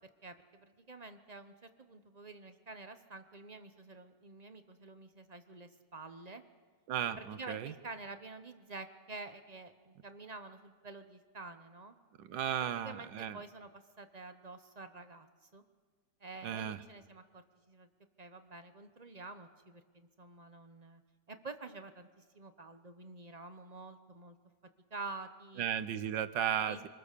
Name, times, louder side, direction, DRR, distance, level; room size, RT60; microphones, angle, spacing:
voice 1, 0.2-6.4 7.2-11.9 12.6-15.3 15.5-15.6 16.2-17.9 18.2-21.0 21.3-24.4 24.6-25.7 26.6-26.9, right 3 dB, 30° right, 9 dB, 0.8 m, -49 dB
voice 2, 6.9-7.7 12.2-13.4 16.4-16.8 25.6-26.9, right 9 dB, 80° right, 13 dB, 1.6 m, -35 dB
26.0 x 20.5 x 6.8 m, 1.5 s
omnidirectional pair, 2.0 m